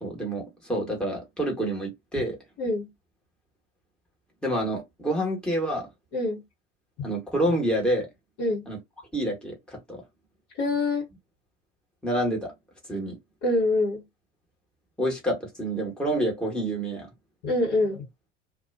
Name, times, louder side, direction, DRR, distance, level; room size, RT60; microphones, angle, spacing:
voice 1, 0.0-2.4 4.4-5.9 7.0-8.1 8.7-8.8 9.1-10.0 12.0-12.5 12.9-13.2 15.0-17.1, right 1 dB, ahead, 1.1 m, -28 dB
voice 2, 2.6-2.9 6.1-6.4 8.4-8.7 10.6-11.0 13.4-14.0 17.4-18.0, left 2 dB, 50° left, 1.2 m, -25 dB
2.3 x 2.2 x 2.5 m
figure-of-eight pair, 75°, 36 cm